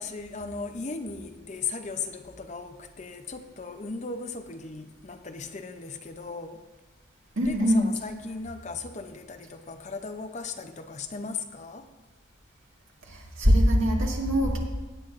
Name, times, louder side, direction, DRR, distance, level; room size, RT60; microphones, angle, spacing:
voice 1, 0.0-6.6 7.4-11.9, left 4 dB, 35° left, 0.6 m, -37 dB
voice 2, 7.4-7.9 13.1-14.6, equal, 90° right, 1.9 m, -22 dB
16.5 x 8.6 x 2.5 m
head